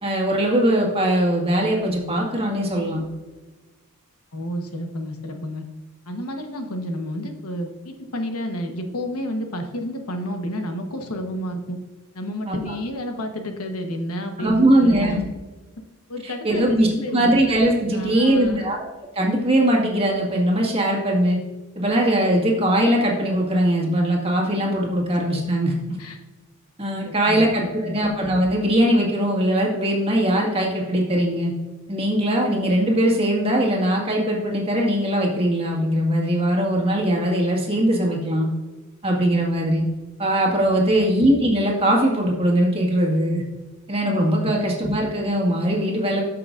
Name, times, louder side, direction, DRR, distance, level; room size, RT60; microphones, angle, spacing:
voice 1, 0.0-3.0 12.5-12.7 14.4-15.2 16.4-18.8 19.2-21.4 21.8-25.7 26.8-31.5 31.9-38.5 39.0-39.8 40.2-43.4 43.9-46.2, right 1 dB, 25° right, -1 dB, 1.8 m, -20 dB
voice 2, 4.3-5.6 6.1-11.8 12.1-15.2 16.1-16.8 17.0-17.4 17.9-18.7 25.3-25.4 26.0-26.2 27.0-28.0 40.8-41.0 44.4-44.6, equal, 75° left, 4 dB, 1.1 m, -30 dB
13.5 x 6.0 x 2.5 m, 1.3 s
head